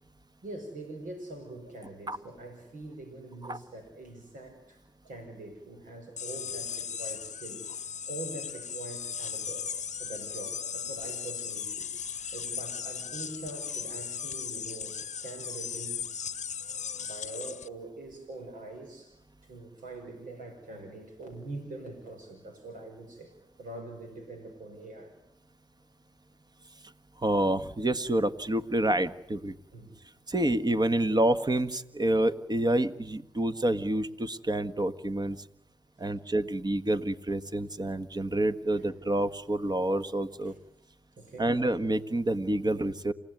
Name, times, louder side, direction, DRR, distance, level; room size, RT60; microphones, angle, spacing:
voice 1, 0.4-7.6 8.1-9.7 10.0-11.9 12.3-16.1 17.0-19.2 19.4-25.1 29.7-29.9 38.7-38.9 40.5-40.6 41.2-41.6, right 2 dB, 75° right, 4 dB, 5.6 m, -43 dB
sound 1, 6.2-17.7, left 7 dB, 60° left, 0.8 m, -37 dB
voice 2, 27.2-29.5 30.3-35.4 36.0-40.5 41.4-43.1, right 1 dB, 30° right, 11 dB, 1.7 m, -28 dB
28.5 x 16.5 x 9.5 m, 0.83 s
supercardioid pair, 40°, 14 cm